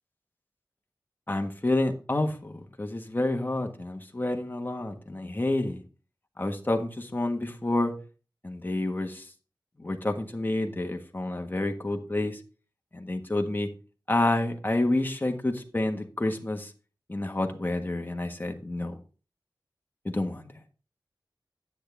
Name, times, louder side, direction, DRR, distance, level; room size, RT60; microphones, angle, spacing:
voice 1, 1.3-5.8 6.4-7.9 8.4-9.2 9.8-12.4 12.9-13.7 14.1-16.7 17.1-19.0 20.0-20.5, left 2 dB, 25° left, 1.4 m, -29 dB
10.0 x 8.4 x 3.4 m
wide cardioid pair, 70°, 8 cm